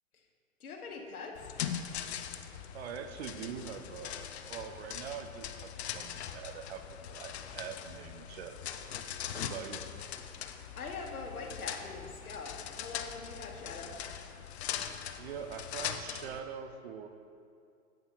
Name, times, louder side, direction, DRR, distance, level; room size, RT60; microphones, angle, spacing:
voice 1, 0.6-1.5 10.3-14.0, left 4 dB, 75° left, 2 dB, 1.4 m, -43 dB
sound 1, 1.4-16.4, left 9 dB, 50° left, 0.5 m, -41 dB
voice 2, 2.7-8.7 9.3-9.9 15.2-17.1, right 7 dB, 45° right, 8 dB, 0.6 m, -43 dB
8.9 x 7.9 x 3.0 m, 2.4 s
hypercardioid pair, 120°, 44 cm